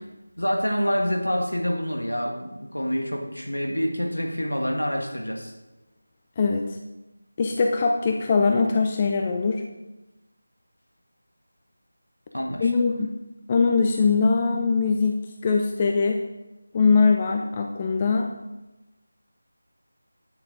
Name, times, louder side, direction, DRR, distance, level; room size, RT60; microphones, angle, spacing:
voice 1, 0.4-5.5 12.3-12.7, equal, 75° left, 2 dB, 1.6 m, -27 dB
voice 2, 6.4-6.8 7.4-9.6 12.6-13.1 13.5-16.2 16.7-18.3, left 4 dB, 20° left, 3 dB, 0.4 m, -22 dB
9.9 x 6.4 x 5.1 m, 1.0 s
figure-of-eight pair, 165°, 0 cm